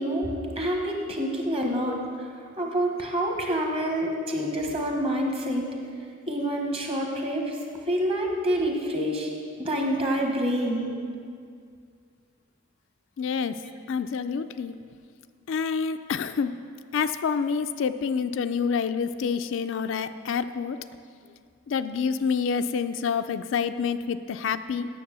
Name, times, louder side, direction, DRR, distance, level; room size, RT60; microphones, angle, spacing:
voice 1, 0.0-2.0 2.6-5.7 6.3-7.6 7.9-9.3 9.6-10.9, equal, 25° right, 1 dB, 1.2 m, -27 dB
voice 2, 13.2-13.5 13.9-14.7 15.5-16.5 16.9-20.8 21.7-24.9, left 6 dB, 65° left, 10 dB, 0.3 m, -27 dB
9.3 x 7.2 x 6.8 m, 2.2 s
head